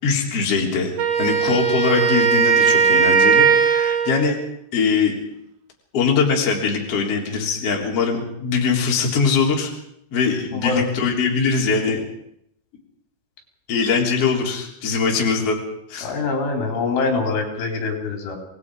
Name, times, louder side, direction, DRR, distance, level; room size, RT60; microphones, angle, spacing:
voice 1, 0.0-4.4 4.7-5.1 5.9-9.7 10.1-12.0 13.7-15.6 15.9-16.1, left 5 dB, 30° left, -1 dB, 4.1 m, -21 dB
Wind instrument woodwind instrument, 1.0-4.3, right 6 dB, 60° right, 3.0 m, -18 dB
voice 2, 16.0-18.4, left 4 dB, 70° left, 2 dB, 6.2 m, -24 dB
27.5 x 20.0 x 5.0 m, 0.77 s
omnidirectional pair, 5.8 m